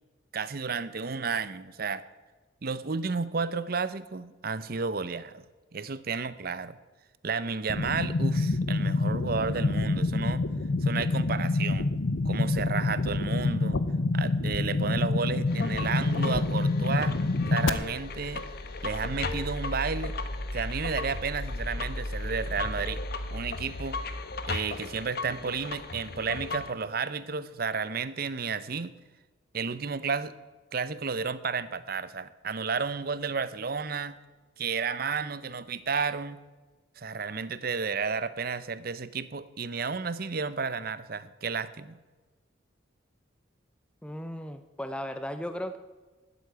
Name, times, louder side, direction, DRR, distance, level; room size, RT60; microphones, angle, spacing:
voice 1, 0.3-2.0 2.6-5.4 5.7-6.8 7.2-10.4 10.8-11.9 12.2-13.8 14.1-17.2 17.5-18.5 18.8-20.2 20.5-23.0 23.3-24.0 24.5-28.9 29.5-30.3 30.7-34.2 34.6-36.4 37.0-42.0, right 5 dB, 50° right, 15 dB, 0.7 m, -32 dB
sound 1, 7.7-17.7, left 2 dB, 75° left, 0.8 m, -27 dB
sound 2, 15.5-26.7, left 2 dB, 50° left, 1.1 m, -35 dB
voice 2, 44.0-45.8, equal, 5° left, 9 dB, 0.6 m, -36 dB
12.5 x 8.2 x 9.5 m, 1.3 s
head